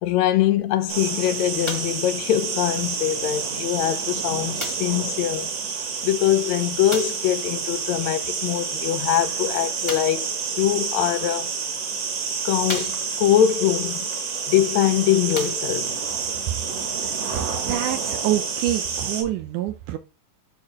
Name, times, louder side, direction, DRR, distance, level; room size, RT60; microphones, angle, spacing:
voice 1, 0.0-5.5 6.0-10.3 10.6-11.5 12.4-14.1 14.5-16.0, left 11 dB, 75° left, 1.8 m, -23 dB
sound 1, 0.9-19.2, right 6 dB, 55° right, 2.9 m, -29 dB
sound 2, 1.6-2.1 3.0-3.1 4.6-5.0 6.9-7.3 9.8-10.3 11.2-11.3 12.0-12.1 12.6-13.4 14.6-14.7 15.2-16.0 16.8-16.9, left 1 dB, 15° left, 1.1 m, -34 dB
voice 2, 17.7-20.0, right 12 dB, 80° right, 2.2 m, -26 dB
11.5 x 4.5 x 3.6 m
omnidirectional pair, 3.7 m